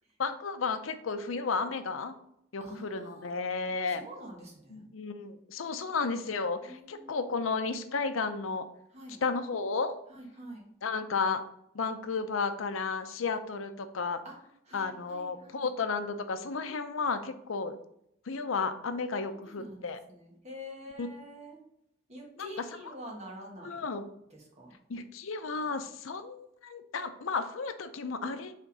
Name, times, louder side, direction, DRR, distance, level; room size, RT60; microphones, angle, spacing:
voice 1, 0.2-2.2 2.5-4.1 4.7-8.7 9.2-10.0 10.8-11.4 11.7-14.2 14.7-17.8 18.3-20.0 21.0-21.1 22.4-22.5 23.6-24.1 24.9-28.5, left 4 dB, 85° left, 9 dB, 0.6 m, -33 dB
voice 2, 2.6-4.8 6.6-7.2 8.9-9.2 10.1-10.7 14.2-14.3 14.7-15.7 16.6-17.1 19.2-21.6 22.1-23.8 24.3-24.7, equal, 35° right, -1 dB, 1.7 m, -47 dB
5.7 x 3.7 x 5.3 m, 0.75 s
head